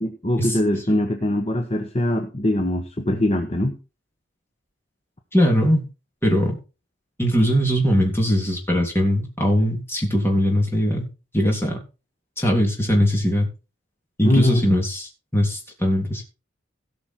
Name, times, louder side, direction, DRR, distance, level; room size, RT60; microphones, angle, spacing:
voice 1, 0.0-3.8 14.2-14.6, left 1 dB, 30° left, 4 dB, 1.2 m, -22 dB
voice 2, 5.3-5.9 6.2-6.6 7.2-11.1 11.3-11.8 12.4-13.5 14.2-16.2, equal, 10° left, 0 dB, 3.3 m, -20 dB
17.0 x 5.9 x 4.6 m, 0.32 s
head